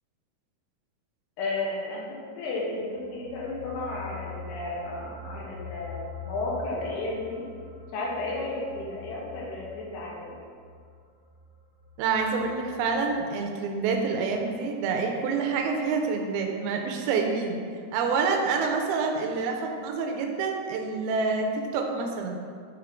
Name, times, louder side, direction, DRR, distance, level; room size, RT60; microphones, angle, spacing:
voice 1, 1.4-7.4 7.9-10.4, left 2 dB, 85° left, -3 dB, 2.9 m, -33 dB
sound 1, 2.7-13.4 13.7-13.9, left 6 dB, 65° right, 2.2 m, -44 dB
voice 2, 12.0-17.6 17.9-22.4, right 4 dB, 80° right, 3 dB, 2.4 m, -27 dB
7.2 x 3.6 x 3.6 m, 2.1 s
omnidirectional pair, 4.5 m